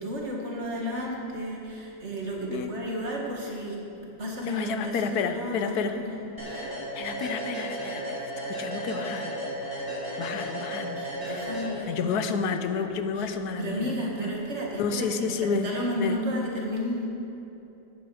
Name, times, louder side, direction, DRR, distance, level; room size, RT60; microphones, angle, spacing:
voice 1, 0.0-3.8 4.2-6.2 6.4-6.7 10.9-12.2 13.2-13.3 13.6-17.1, equal, 50° right, -2 dB, 2.0 m, -32 dB
voice 2, 2.5-2.8 4.5-6.0 6.9-9.3 10.2-11.5 11.9-13.9 14.2-14.3 14.8-15.7 16.0-16.3, left 5 dB, 90° left, 8 dB, 1.3 m, -30 dB
sound 1, 6.4-12.2, equal, 15° right, 3.1 m, -34 dB
14.0 x 9.3 x 4.9 m, 2.9 s
omnidirectional pair, 1.6 m